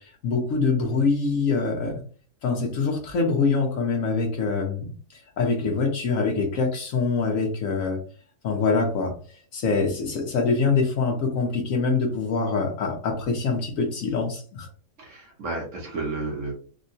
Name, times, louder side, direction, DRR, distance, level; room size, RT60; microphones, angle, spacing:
voice 1, 0.0-2.0 2.4-8.0 8.4-14.7, left 4 dB, 65° left, 2 dB, 1.1 m, -25 dB
voice 2, 15.0-16.5, right 3 dB, 55° right, -1 dB, 1.1 m, -32 dB
3.7 x 2.2 x 2.6 m, 0.39 s
omnidirectional pair, 1.7 m